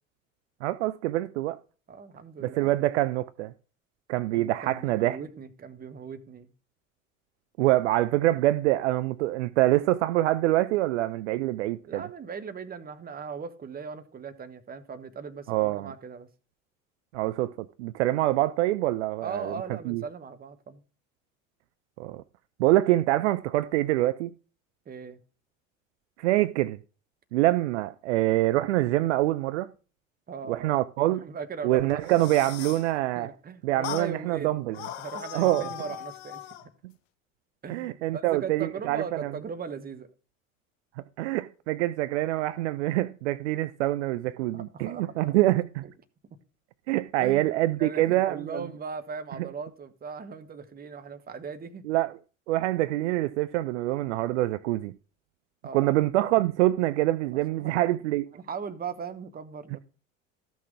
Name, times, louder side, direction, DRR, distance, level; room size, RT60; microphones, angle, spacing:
voice 1, 0.6-1.6 2.4-3.5 4.1-5.2 7.6-12.0 15.5-15.9 17.1-19.5 19.9-20.0 22.0-22.2 22.6-24.3 26.2-26.8 27.3-29.7 30.5-31.3 31.6-33.3 33.6-34.8 35.3-35.7 37.7-39.3 41.2-45.8 46.9-48.6 51.9-52.1 52.5-54.9 55.7-58.3, right 16 dB, 60° right, 0.5 m, -25 dB
voice 2, 1.9-2.8 4.3-6.5 11.9-16.3 19.2-20.8 24.9-25.2 30.3-30.8 31.1-32.0 33.2-34.6 35.0-36.7 37.6-40.1 44.5-45.2 45.8-45.9 47.2-51.9 55.6-55.9 57.3-57.8 58.3-59.8, right 5 dB, 20° right, 1.0 m, -39 dB
sound 1, 31.9-32.9 33.8-34.1 34.7-36.7, left 12 dB, 55° left, 0.7 m, -39 dB
13.5 x 6.1 x 3.5 m
figure-of-eight pair, 65°, 40 cm